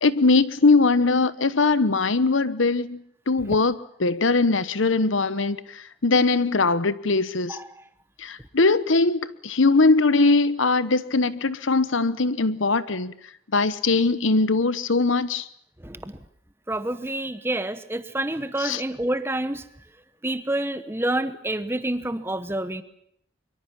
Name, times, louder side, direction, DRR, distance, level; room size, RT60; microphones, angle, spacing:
voice 1, 0.0-7.6 8.2-13.1 13.5-15.5 18.6-18.8, left 3 dB, 80° left, 1.0 m, -21 dB
voice 2, 15.8-16.2 16.7-19.6 20.2-22.8, right 1 dB, 10° right, 1.0 m, -28 dB
23.5 x 23.5 x 7.3 m
head